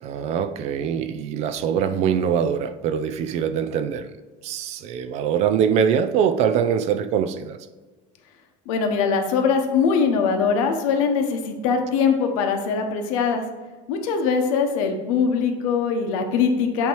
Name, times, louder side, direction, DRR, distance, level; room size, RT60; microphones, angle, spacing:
voice 1, 0.0-4.1 4.4-7.6, right 8 dB, 40° right, 0.4 m, -23 dB
voice 2, 8.7-13.4 13.9-16.9, left 5 dB, 85° left, 1.1 m, -22 dB
8.6 x 3.0 x 4.6 m
cardioid pair, 160°, 17 cm